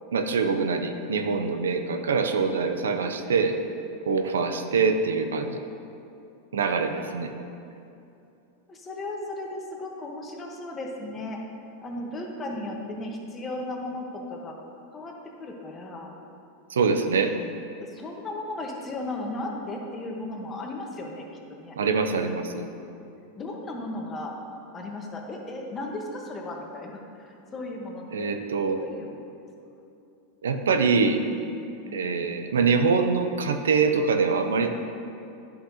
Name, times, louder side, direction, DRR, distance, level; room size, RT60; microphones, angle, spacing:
voice 1, 0.1-3.6 4.1-5.6 6.5-7.3 16.7-17.3 21.8-22.7 28.1-28.8 30.4-31.2 31.9-34.7, right 5 dB, 90° right, 6 dB, 0.5 m, -24 dB
voice 2, 8.7-11.4 11.8-14.6 14.9-15.1 15.4-16.1 17.8-21.8 23.4-24.4 24.7-28.3 28.7-29.3 31.8-32.4, left 2 dB, 25° left, 0 dB, 1.1 m, -36 dB
10.0 x 5.8 x 2.8 m, 2.7 s
hypercardioid pair, 105°, 0 cm